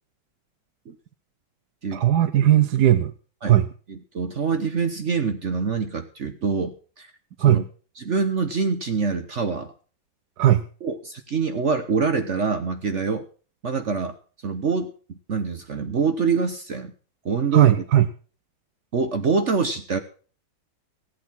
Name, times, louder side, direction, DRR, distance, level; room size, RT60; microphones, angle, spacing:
voice 1, 1.9-3.1 3.4-3.7 7.4-7.6 10.4-10.6 17.5-18.1, right 12 dB, 65° right, 11 dB, 1.2 m, -17 dB
voice 2, 3.9-7.1 7.5-7.6 8.0-9.7 10.8-13.2 13.6-14.2 14.4-16.9 17.2-17.8 18.9-20.0, right 5 dB, 45° right, 8 dB, 1.1 m, -25 dB
16.0 x 8.4 x 6.0 m, 0.39 s
omnidirectional pair, 2.1 m